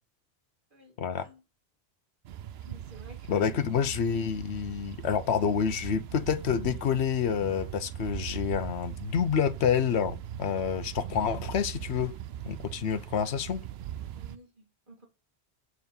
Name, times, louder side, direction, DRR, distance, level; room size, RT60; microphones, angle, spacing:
voice 1, 0.7-1.4 2.6-3.8 13.1-13.5 14.1-15.1, right 1 dB, 50° right, 2.5 m, -52 dB
sound 1, 2.2-14.4, right 11 dB, 75° right, 0.8 m, -40 dB
voice 2, 3.3-12.1 12.4-13.6, left 7 dB, 85° left, 1.0 m, -28 dB
7.1 x 4.6 x 5.3 m
omnidirectional pair, 1.1 m